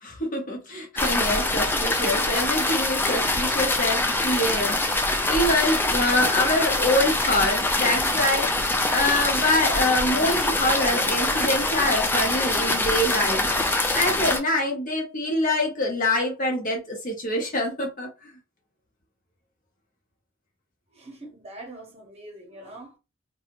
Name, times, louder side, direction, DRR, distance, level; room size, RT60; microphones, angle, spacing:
voice 1, 0.0-13.5 13.9-18.3, left 1 dB, 40° left, 0.8 m, -25 dB
sound 1, 1.0-14.4, left 2 dB, 10° left, 0.3 m, -24 dB
voice 2, 20.9-23.0, right 1 dB, 30° right, 0.9 m, -43 dB
2.7 x 2.3 x 2.9 m
head